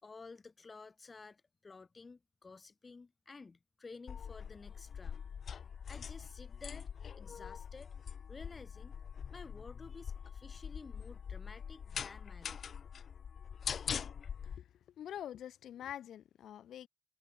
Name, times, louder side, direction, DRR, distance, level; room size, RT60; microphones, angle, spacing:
voice 1, 0.0-5.3 5.9-8.0 8.3-9.0 9.3-12.6, left 4 dB, 30° left, 6.1 m, -53 dB
sound 1, 4.1-14.6, left 7 dB, 55° left, 1.5 m, -43 dB
voice 2, 14.4-16.9, left 10 dB, 90° left, 4.3 m, -46 dB
cardioid pair, 125°, 0 cm